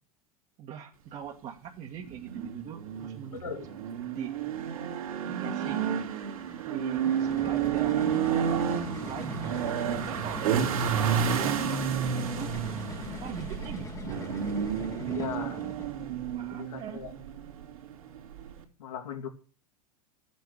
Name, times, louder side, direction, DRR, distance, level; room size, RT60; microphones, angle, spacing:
voice 1, 0.6-3.6 4.0-4.3 5.2-5.8 6.7-9.6 10.0-10.8 11.2-12.5 13.2-14.3 15.0-15.7 16.3-17.0, right 8 dB, 35° right, 0 dB, 1.8 m, -42 dB
sound 1, 2.0-18.6, right 8 dB, 65° right, 3.1 m, -31 dB
voice 2, 3.3-3.7 15.1-15.6 16.5-17.1 18.8-19.3, left 8 dB, 70° left, 4 dB, 2.7 m, -38 dB
sound 2, 6.9-16.0, left 4 dB, 15° left, 1.5 m, -41 dB
14.5 x 8.4 x 6.7 m, 0.39 s
figure-of-eight pair, 85°, 19 cm